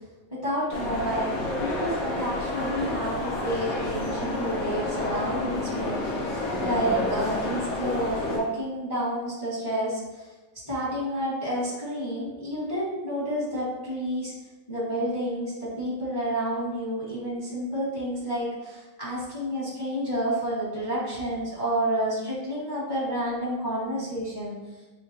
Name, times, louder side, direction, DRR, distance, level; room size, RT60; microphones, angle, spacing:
voice 1, 0.3-6.0 6.6-10.0 10.7-14.3 14.7-24.6, right 1 dB, 20° left, -7 dB, 0.7 m, -29 dB
sound 1, 0.7-8.4, left 2 dB, 55° left, 1.4 m, -30 dB
6.3 x 2.2 x 2.7 m, 1.1 s
omnidirectional pair, 2.0 m